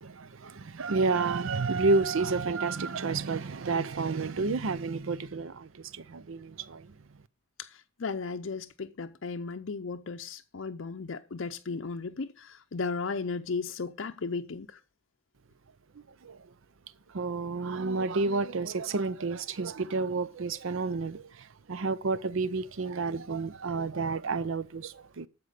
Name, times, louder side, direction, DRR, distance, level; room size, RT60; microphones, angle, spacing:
voice 1, 0.0-6.9 16.2-16.4 17.1-25.3, right 3 dB, 65° right, 0.6 m, -30 dB
voice 2, 7.6-14.8, left 4 dB, 60° left, 0.6 m, -35 dB
12.5 x 4.6 x 6.4 m
head